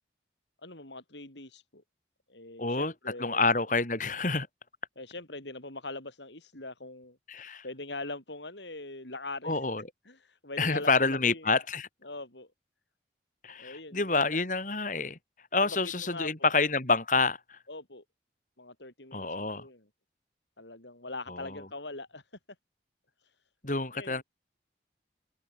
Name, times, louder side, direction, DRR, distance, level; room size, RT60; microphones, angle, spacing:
voice 1, 0.6-1.8 2.3-3.4 5.0-9.6 10.1-11.5 12.0-12.5 13.6-14.4 15.6-16.5 17.7-18.0 18.6-19.3 19.5-19.9 20.6-22.3 23.2-23.3 23.9-24.2, left 2 dB, 80° left, 7.3 m, -42 dB
voice 2, 2.6-2.9 3.2-4.5 7.3-7.6 9.4-9.8 10.6-11.9 13.4-15.2 15.5-17.6 19.1-19.7 21.3-21.5 23.6-24.2, left 3 dB, 45° left, 3.2 m, -28 dB
head